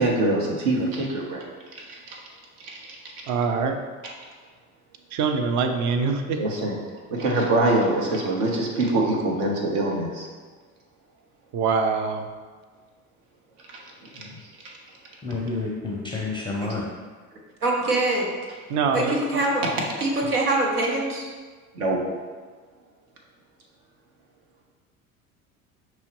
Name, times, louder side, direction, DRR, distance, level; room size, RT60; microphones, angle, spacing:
voice 1, 0.0-1.4 1.7-2.2 2.6-3.0 4.0-4.1 6.4-6.8 7.1-10.3 13.7-13.8 14.1-14.3 14.6-14.7 19.6-19.7 21.7-22.0, right 2 dB, 65° right, -1 dB, 1.1 m, -24 dB
voice 2, 3.3-3.8 5.1-6.4 11.5-12.2 18.7-19.4, right 5 dB, 40° right, 6 dB, 0.6 m, -24 dB
voice 3, 15.2-16.9, left 3 dB, 10° left, -3 dB, 0.5 m, -29 dB
voice 4, 17.6-18.3 18.9-19.6 20.0-21.3, right 2 dB, 85° right, -1 dB, 0.9 m, -23 dB
5.5 x 3.0 x 3.0 m, 1.5 s
hypercardioid pair, 65°, 44 cm